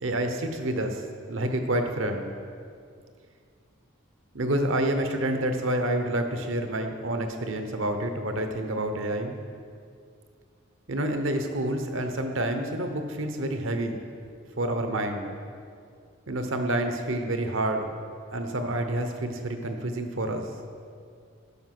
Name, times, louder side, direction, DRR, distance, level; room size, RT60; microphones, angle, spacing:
voice 1, 0.0-1.0 1.3-2.3 4.3-9.4 10.9-14.0 14.6-15.3 16.3-17.9 18.3-20.5, right 1 dB, 65° right, 6 dB, 0.9 m, -28 dB
12.5 x 5.6 x 6.0 m, 2.3 s
head